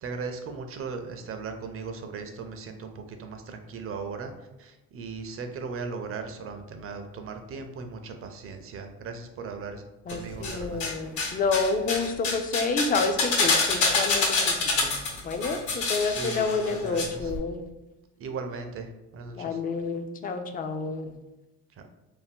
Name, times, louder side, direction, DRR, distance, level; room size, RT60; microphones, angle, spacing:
voice 1, 0.0-4.3 4.6-9.8 10.1-10.8 16.0-17.3 18.2-19.6 21.8-21.9, right 4 dB, 45° right, 6 dB, 0.5 m, -37 dB
sound 1, 10.1-10.9 11.2-17.0 17.3-17.4, left 3 dB, 65° left, 0.9 m, -26 dB
voice 2, 10.1-17.6 19.4-21.1, left 4 dB, 30° left, 7 dB, 0.3 m, -29 dB
2.7 x 2.1 x 3.5 m, 1.0 s
supercardioid pair, 85°, 32 cm